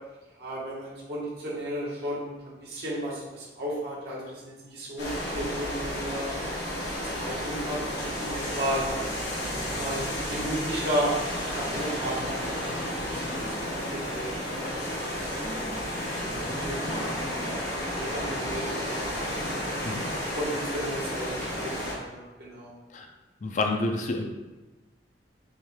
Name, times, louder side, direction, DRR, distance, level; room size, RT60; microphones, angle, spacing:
voice 1, 0.4-6.4 7.2-11.1 11.6-12.7 13.1-14.3 14.6-14.7 15.4-16.3 16.6-18.9 20.3-22.7, right 1 dB, 65° right, -6 dB, 1.2 m, -34 dB
sound 1, 5.0-21.9, equal, 80° left, 1.4 m, -32 dB
sound 2, 9.7-17.7, left 1 dB, 40° right, 1.0 m, -45 dB
voice 2, 23.4-24.2, left 2 dB, 45° left, 3 dB, 0.4 m, -28 dB
6.2 x 3.2 x 2.2 m, 1.1 s
head